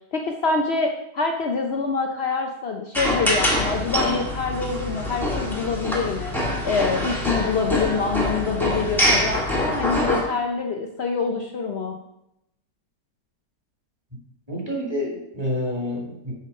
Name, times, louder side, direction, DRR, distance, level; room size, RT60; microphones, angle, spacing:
voice 1, 0.0-11.9, left 4 dB, 65° left, 3 dB, 0.6 m, -26 dB
sound 1, 2.9-10.2, left 1 dB, ahead, 1.4 m, -24 dB
voice 2, 14.5-16.3, left 1 dB, 15° right, -3 dB, 2.1 m, -28 dB
6.8 x 5.1 x 5.3 m, 0.83 s
omnidirectional pair, 1.8 m